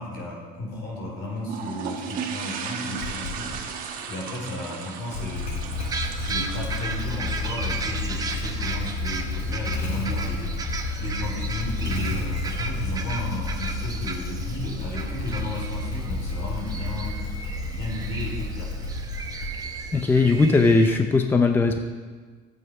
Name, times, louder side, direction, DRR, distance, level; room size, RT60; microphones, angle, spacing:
voice 1, 0.0-3.5 4.1-5.6 6.1-10.5 11.0-17.2 17.7-18.7, left 2 dB, 75° left, -2 dB, 4.0 m, -34 dB
sound 1, 1.4-8.0, right 6 dB, 50° right, 1.4 m, -36 dB
Motorcycle / Engine starting, 3.0-3.6 5.0-19.9, left 3 dB, 50° left, 2.3 m, -31 dB
sound 2, 5.8-21.0, right 4 dB, 20° right, 0.9 m, -35 dB
voice 2, 19.9-21.8, left 3 dB, 10° left, 6 dB, 0.6 m, -19 dB
12.5 x 8.0 x 5.4 m, 1.5 s
cardioid pair, 150°, 18 cm